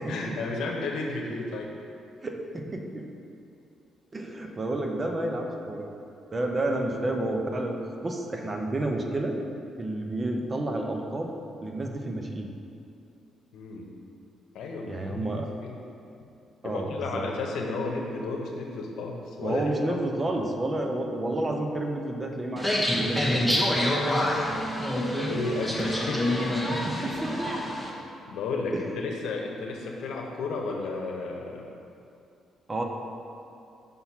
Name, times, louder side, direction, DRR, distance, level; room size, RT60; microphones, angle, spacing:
voice 1, 0.0-1.7 13.5-13.9 14.5-15.8 16.6-20.0 25.3-27.1 28.3-31.7, left 3 dB, 80° left, 0 dB, 0.9 m, -33 dB
voice 2, 2.2-3.1 4.1-5.9 6.3-9.4 9.8-11.3 11.6-12.5 14.9-15.5 16.6-17.3 19.4-23.6 26.7-27.5 28.7-28.8 32.7-32.8, right 1 dB, 30° right, 2 dB, 0.7 m, -30 dB
sound 1, 22.6-27.9, left 1 dB, ahead, 1.0 m, -27 dB
5.5 x 4.1 x 5.9 m, 2.6 s
cardioid pair, 90°, 0 cm